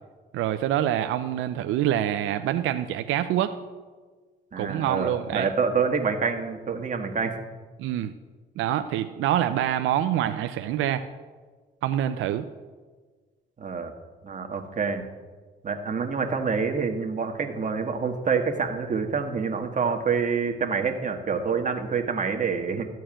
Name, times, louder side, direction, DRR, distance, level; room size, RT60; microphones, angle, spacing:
voice 1, 0.3-3.6 4.6-5.5 7.8-8.1 8.6-11.1 11.8-12.4, right 11 dB, 90° right, 8 dB, 0.6 m, -26 dB
voice 2, 4.5-7.4 13.6-13.9 14.2-15.0 15.6-22.8, right 5 dB, 40° right, 4 dB, 1.6 m, -27 dB
14.0 x 4.6 x 8.9 m, 1.4 s
cardioid pair, 90°, 20 cm